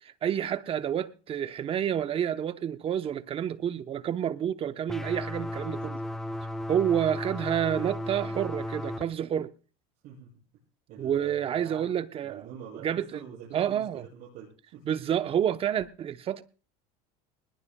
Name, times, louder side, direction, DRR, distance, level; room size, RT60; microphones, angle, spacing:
voice 1, 0.2-6.0 6.7-9.5 11.0-12.5 12.8-13.2 13.5-14.0 14.9-16.4, right 9 dB, 30° right, 0.8 m, -29 dB
sound 1, 4.9-9.0, left 1 dB, ahead, 0.7 m, -35 dB
voice 2, 10.9-11.9 12.2-14.8, right 8 dB, 60° right, 7.4 m, -45 dB
20.5 x 20.0 x 2.3 m
supercardioid pair, 130°, 18 cm